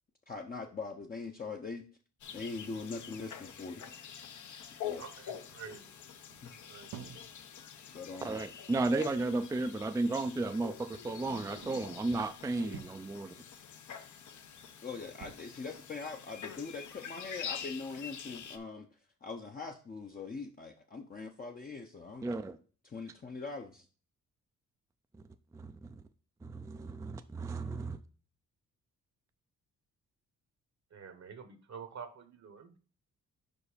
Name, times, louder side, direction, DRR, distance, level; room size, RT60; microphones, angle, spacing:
voice 1, 0.3-1.8 2.3-3.9 4.8-5.0 6.4-6.5 7.9-8.4 14.8-22.4 22.8-23.8, left 4 dB, 25° left, 2 dB, 0.7 m, -42 dB
sound 1, 2.2-18.6, left 8 dB, 60° left, 0.8 m, -46 dB
voice 2, 5.0-5.9 6.4-6.9 30.9-32.8, right 6 dB, 55° right, 9 dB, 1.0 m, -48 dB
sound 2, 6.3-7.4 9.0-9.1 10.2-10.4 11.0-12.2 12.6-13.1 14.4-14.8 15.1-15.3, right 8 dB, 80° right, 0.7 m, -50 dB
voice 3, 8.2-13.3 22.2-22.6 25.5-25.9 26.4-28.0, right 2 dB, 10° right, 8 dB, 0.4 m, -34 dB
5.2 x 5.1 x 4.9 m, 0.39 s
cardioid pair, 110°, 33 cm